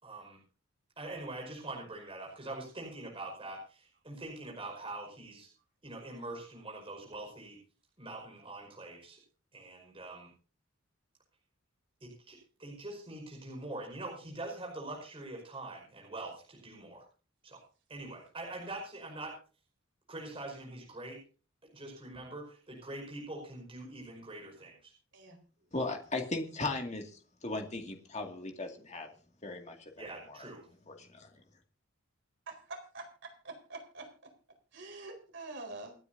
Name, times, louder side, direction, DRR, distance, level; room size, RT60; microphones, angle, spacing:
voice 1, 0.0-0.4 1.0-5.5 5.8-7.6 8.0-9.2 9.5-10.3 12.0-17.1 17.4-17.6 17.9-19.4 20.1-21.2 21.6-24.9 30.0-30.7, right 2 dB, 25° right, 0 dB, 5.3 m, -44 dB
voice 2, 25.7-27.1 27.4-29.1 29.4-29.8 30.3-30.4 30.9-31.3, left 2 dB, 35° left, 3 dB, 2.2 m, -37 dB
voice 3, 32.5-34.1 34.7-35.9, right 3 dB, 60° right, 2 dB, 4.5 m, -45 dB
27.5 x 9.7 x 2.7 m, 0.37 s
head